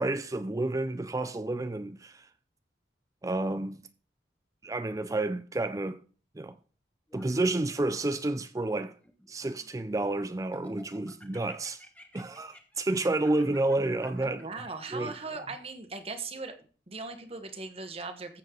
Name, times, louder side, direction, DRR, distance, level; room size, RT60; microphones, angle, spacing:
voice 1, 0.0-2.3 3.2-3.8 4.6-6.0 6.4-6.6 7.1-8.9 9.3-11.8 12.1-14.5 14.9-15.1, right 2 dB, 20° right, 0.4 m, -30 dB
Laughter, 7.1-8.4 9.0-10.1 10.5-15.6, left 1 dB, 10° left, 1.2 m, -54 dB
voice 2, 14.2-16.6 16.9-18.4, right 3 dB, 35° right, 1.2 m, -39 dB
14.5 x 7.5 x 3.8 m
head